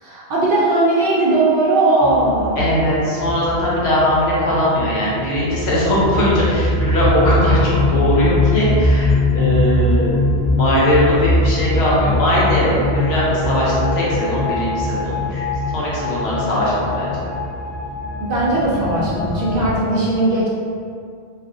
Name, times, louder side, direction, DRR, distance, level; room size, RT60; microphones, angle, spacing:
voice 1, 0.0-2.6 18.2-20.5, right 2 dB, 60° right, -7 dB, 0.7 m, -18 dB
sound 1, 2.0-19.8, left 2 dB, 5° right, 0.4 m, -21 dB
voice 2, 2.6-10.1 10.5-15.5 15.7-17.2, equal, 70° left, -7 dB, 1.0 m, -19 dB
2.5 x 2.3 x 2.5 m, 2.3 s
omnidirectional pair, 1.1 m